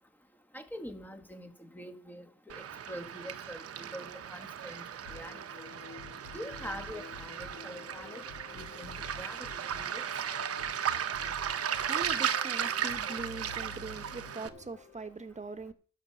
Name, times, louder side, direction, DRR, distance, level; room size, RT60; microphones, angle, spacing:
voice 1, 0.5-4.8 5.1-5.7 6.3-8.2 8.5-10.0, equal, 5° left, 1.7 m, -45 dB
Waves surf, 2.5-14.5, right 9 dB, 50° right, 1.0 m, -36 dB
sound 1, 5.1-15.1, left 5 dB, 65° left, 2.5 m, -49 dB
voice 2, 11.6-15.7, right 3 dB, 25° right, 1.4 m, -42 dB
11.5 x 6.2 x 7.2 m
cardioid pair, 90°, 30 cm